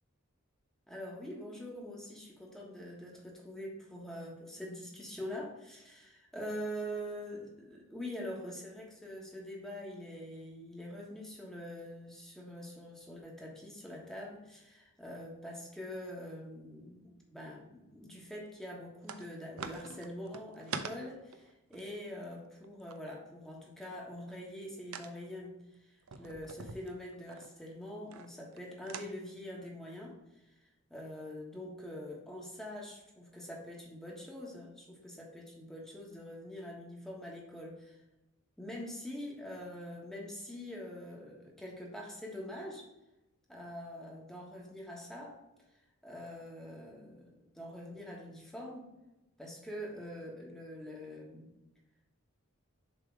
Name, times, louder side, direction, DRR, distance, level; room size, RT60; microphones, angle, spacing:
voice 1, 0.9-30.2 30.5-30.6 30.9-38.0 38.6-42.9 43.5-45.4 46.0-48.9 49.4-51.5, equal, ahead, -2 dB, 1.4 m, -44 dB
sound 1, 19.0-19.3 19.6-23.0 24.9-25.1 26.0-27.5 28.1-28.6 28.9-29.1, right 5 dB, 80° right, 0.6 m, -43 dB
7.1 x 3.4 x 4.6 m, 0.97 s
head